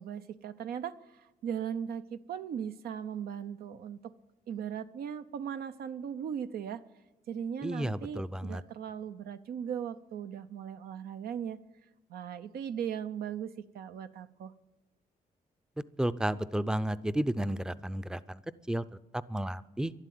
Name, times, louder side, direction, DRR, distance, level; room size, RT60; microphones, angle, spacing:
voice 1, 0.0-4.1 4.5-6.8 7.3-11.6 12.1-14.5, right 8 dB, 85° right, 10 dB, 0.6 m, -38 dB
voice 2, 7.6-8.6 16.0-18.4 18.7-18.8 19.3-19.9, right 1 dB, 5° right, 14 dB, 0.5 m, -32 dB
11.5 x 11.5 x 9.2 m, 1.1 s
cardioid pair, 100°, 15 cm